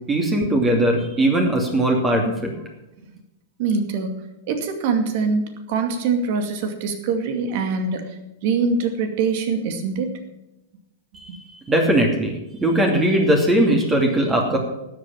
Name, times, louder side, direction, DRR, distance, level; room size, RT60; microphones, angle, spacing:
voice 1, 0.1-2.5 11.2-11.3 11.7-14.6, right 1 dB, 15° right, 2 dB, 2.7 m, -19 dB
voice 2, 3.6-10.2 11.3-11.4 14.5-14.6, right 4 dB, 50° right, 6 dB, 2.3 m, -24 dB
12.5 x 8.4 x 7.4 m, 0.94 s
figure-of-eight pair, 100°, 0 cm